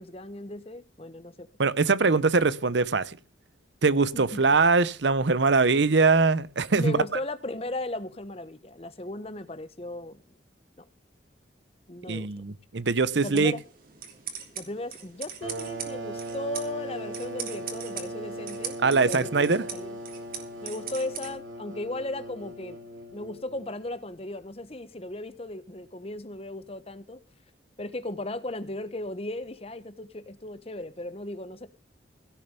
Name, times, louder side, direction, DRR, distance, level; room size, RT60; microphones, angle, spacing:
voice 1, 0.0-1.5 4.1-4.4 6.7-10.2 11.9-12.3 13.2-13.6 14.5-18.8 19.0-19.3 19.7-20.0 20.6-22.8 23.1-27.2 27.8-31.7, left 1 dB, 30° left, 1.0 m, -36 dB
voice 2, 1.6-3.2 3.8-7.0 12.1-13.5 18.8-19.6, right 4 dB, 70° right, 0.8 m, -22 dB
sound 1, 13.2-21.3, right 7 dB, 50° right, 3.0 m, -41 dB
sound 2, 15.4-23.8, right 1 dB, 90° right, 2.8 m, -39 dB
16.5 x 6.8 x 6.7 m
head